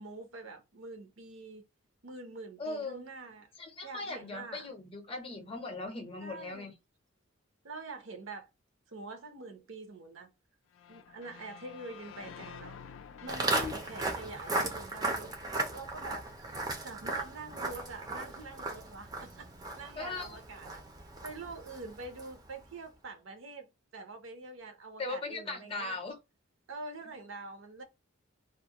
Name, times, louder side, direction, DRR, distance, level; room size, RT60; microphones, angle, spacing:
voice 1, 0.0-1.6 2.0-3.5 3.8-4.7 6.2-6.7 7.6-8.5 8.9-10.3 10.9-12.8 13.2-16.3 16.8-20.9 21.2-26.0 26.7-27.8, right 3 dB, 65° right, 0.6 m, -45 dB
voice 2, 2.6-3.0 3.6-6.7 13.5-13.7 20.0-20.4 25.0-26.2, left 3 dB, 25° left, 0.6 m, -39 dB
sound 1, 10.7-15.8, left 7 dB, 65° left, 0.3 m, -51 dB
Walk footsteps, 13.3-22.5, right 2 dB, 20° right, 0.4 m, -36 dB
2.4 x 2.1 x 2.7 m
head